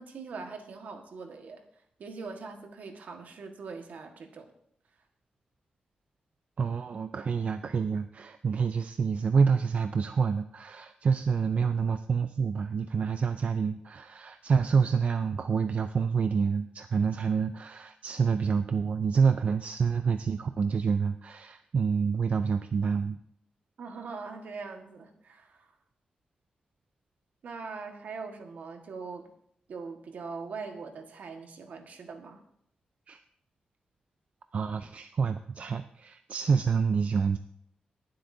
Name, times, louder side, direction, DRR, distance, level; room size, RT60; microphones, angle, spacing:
voice 1, 0.0-1.6 2.0-4.5 23.8-25.7 27.4-29.3 29.7-32.4, right 4 dB, 75° right, 4 dB, 1.6 m, -41 dB
voice 2, 6.6-23.2 33.1-33.2 34.5-37.4, right 5 dB, 55° right, 9 dB, 0.5 m, -27 dB
22.5 x 7.6 x 2.7 m, 0.70 s
wide cardioid pair, 120°, 3 cm